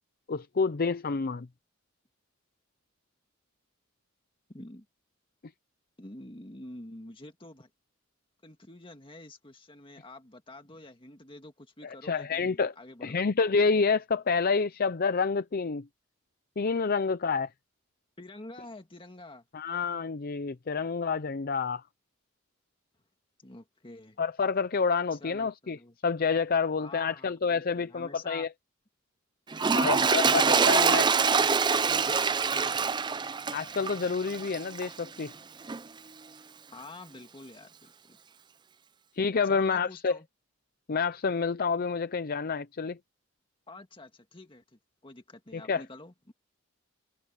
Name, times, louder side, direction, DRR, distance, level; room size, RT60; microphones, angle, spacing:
voice 1, 0.3-1.5 11.8-12.7 13.0-15.9 16.6-17.5 19.5-21.8 24.2-28.5 29.7-31.1 33.5-35.3 39.1-40.2 40.9-43.0 45.5-45.8, left 5 dB, 45° left, 0.6 m, -28 dB
voice 2, 4.5-4.9 6.0-7.7 8.4-13.2 18.2-19.5 23.4-24.2 25.1-26.0 26.8-28.5 29.7-33.1 36.7-38.2 39.4-40.3 43.7-46.3, left 2 dB, 25° left, 2.0 m, -48 dB
Toilet flush, 29.5-35.0 35.7-35.8, right 5 dB, 20° right, 0.5 m, -25 dB
head